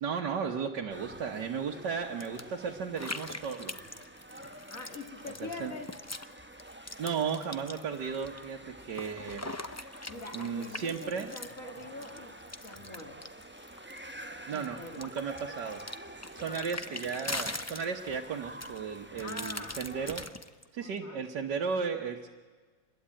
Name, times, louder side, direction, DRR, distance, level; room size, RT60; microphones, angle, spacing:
voice 1, 0.0-3.7 5.4-5.7 7.0-9.5 10.3-11.3 14.5-15.8 16.3-20.3 20.7-22.3, right 6 dB, 80° right, 0 dB, 1.9 m, -35 dB
sound 1, 0.9-20.3, right 1 dB, 10° right, 0.9 m, -48 dB
sound 2, 2.2-2.4 3.0-6.3 6.6-8.4 8.8-14.1 14.5-18.2 18.6-20.6, left 2 dB, 25° left, 0.4 m, -42 dB
voice 2, 4.7-5.9 10.1-12.3 12.6-13.2 14.5-15.1 16.4-16.7 19.2-19.8 20.8-21.2, left 3 dB, 50° left, 3 dB, 2.5 m, -44 dB
27.0 x 21.5 x 8.9 m, 1.4 s
omnidirectional pair, 1.8 m